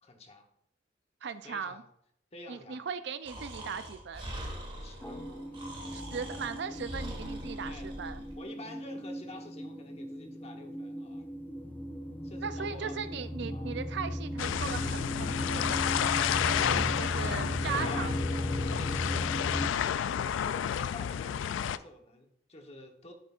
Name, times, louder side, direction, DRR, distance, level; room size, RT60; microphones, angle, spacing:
voice 1, 0.0-0.5 1.4-1.8 2.3-2.8 4.8-5.2 7.6-7.9 8.4-11.3 12.2-13.0 13.5-13.7 16.5-18.1 18.6-19.7 20.0-23.1, left 2 dB, 35° left, 3 dB, 1.1 m, -48 dB
voice 2, 1.2-1.8 2.5-4.3 5.9-8.2 12.4-18.1, right 6 dB, 65° right, 11 dB, 0.5 m, -38 dB
Breathing, 3.2-8.4, right 1 dB, 30° right, 1.7 m, -42 dB
sound 1, 5.0-19.7, equal, 10° left, 0.7 m, -37 dB
sound 2, 14.4-21.8, left 9 dB, 80° left, 0.3 m, -31 dB
10.5 x 6.5 x 2.5 m, 0.71 s
head